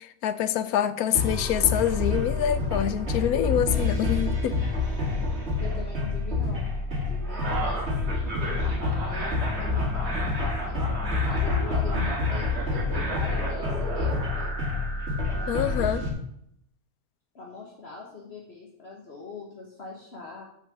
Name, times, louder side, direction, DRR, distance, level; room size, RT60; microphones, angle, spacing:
voice 1, 0.2-4.6 15.5-16.0, left 10 dB, 70° left, 1.0 m, -25 dB
sound 1, 1.1-16.1, left 3 dB, 40° right, 2.1 m, -27 dB
voice 2, 5.6-6.7 7.1-7.9 8.7-14.6 15.3-16.1 17.3-20.4, left 4 dB, 40° left, 1.5 m, -42 dB
7.1 x 5.6 x 6.9 m
omnidirectional pair, 1.7 m